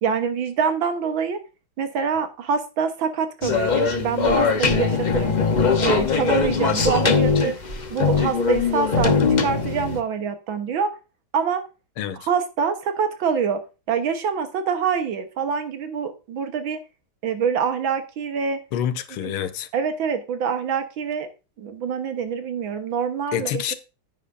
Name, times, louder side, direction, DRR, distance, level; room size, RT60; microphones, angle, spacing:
voice 1, 0.0-1.4 1.8-5.4 5.8-7.6 7.9-10.9 11.3-11.6 12.3-13.6 13.9-16.8 17.2-18.6 19.2-19.3 19.7-21.3 21.6-23.7, right 6 dB, 75° right, 1.9 m, -25 dB
sound 1, 3.4-10.0, left 5 dB, 60° left, 0.4 m, -21 dB
sound 2, 4.1-9.3, equal, 20° left, 4.4 m, -39 dB
voice 2, 12.0-12.3 18.7-19.7 23.3-23.7, left 10 dB, 85° left, 1.6 m, -27 dB
10.0 x 9.8 x 2.6 m
omnidirectional pair, 2.2 m